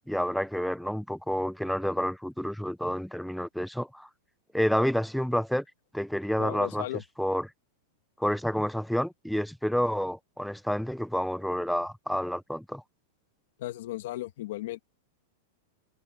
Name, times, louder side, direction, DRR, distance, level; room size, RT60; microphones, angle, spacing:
voice 1, 0.1-4.1 4.5-5.6 5.9-6.8 7.2-7.5 8.2-12.8, equal, ahead, 0.5 m, -29 dB
voice 2, 6.4-7.0 13.6-14.8, left 15 dB, 55° left, 2.2 m, -35 dB
supercardioid pair, 180°, 0 cm